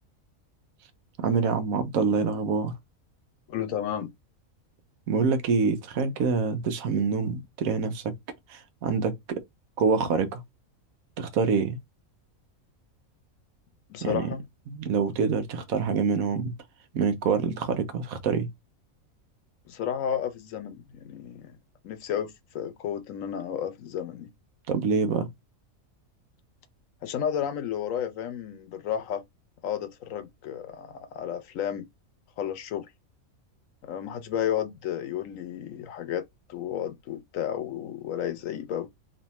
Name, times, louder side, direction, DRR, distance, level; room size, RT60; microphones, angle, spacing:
voice 1, 1.2-2.8 5.1-8.2 8.5-9.4 9.8-10.4 11.2-11.8 14.0-14.3 14.7-16.5 16.9-18.5 24.7-25.3, right 5 dB, 80° right, 1.2 m, -26 dB
voice 2, 3.5-4.1 13.9-14.4 19.7-21.6 21.8-24.3 27.0-29.2 29.6-31.9 32.4-32.9 33.8-36.2 36.5-38.9, left 9 dB, 70° left, 1.0 m, -32 dB
3.2 x 2.7 x 4.1 m
omnidirectional pair, 1.5 m